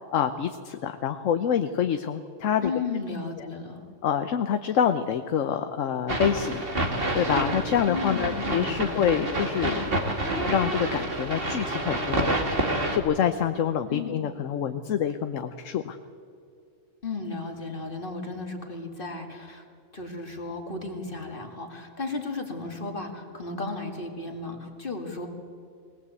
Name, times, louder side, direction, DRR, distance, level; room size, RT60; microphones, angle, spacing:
voice 1, 0.1-2.7 3.4-3.5 4.0-6.6 7.1-9.9 10.5-12.4 12.9-16.0, left 8 dB, 75° left, 8 dB, 1.2 m, -26 dB
voice 2, 2.6-3.8 7.9-9.2 13.9-14.2 14.5-14.6 17.0-19.6 19.9-25.3, left 3 dB, 40° left, 3 dB, 2.4 m, -34 dB
sound 1, 6.1-13.0, right 1 dB, 45° right, 2.3 m, -28 dB
22.5 x 19.0 x 8.3 m, 2.4 s
omnidirectional pair, 1.4 m